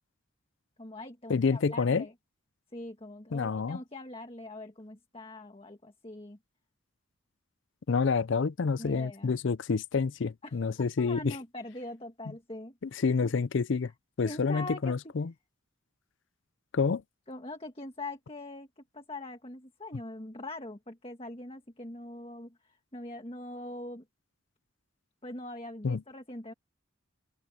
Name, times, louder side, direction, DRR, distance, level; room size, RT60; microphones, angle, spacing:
voice 1, 0.8-2.1 2.7-6.4 8.8-9.3 10.4-10.6 11.0-13.3 14.2-15.0 17.3-24.0 25.2-26.5, left 2 dB, 25° left, 1.7 m, -42 dB
voice 2, 1.3-2.1 3.3-3.8 7.9-11.4 12.8-13.9 14.2-15.3 16.7-17.0 25.8-26.0, left 5 dB, 60° left, 0.5 m, -28 dB
head